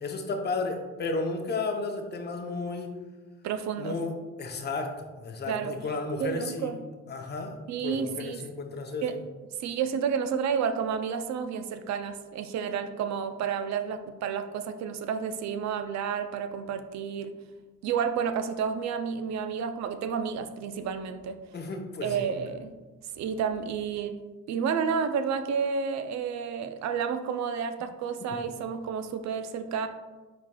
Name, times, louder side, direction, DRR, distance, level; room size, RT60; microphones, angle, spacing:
voice 1, 0.0-2.9 3.8-4.1 4.4-4.9 5.2-6.7 7.1-7.6 7.8-9.1 21.5-22.2, left 3 dB, 35° left, 3 dB, 0.6 m, -33 dB
voice 2, 3.4-4.0 5.5-5.8 6.2-6.8 7.7-8.5 9.0-9.1 9.6-17.4 17.8-21.4 22.0-22.7 23.1-24.2 24.5-29.9, right 7 dB, 65° right, 9 dB, 0.4 m, -30 dB
4.5 x 4.1 x 2.2 m, 1.3 s
cardioid pair, 90°, 30 cm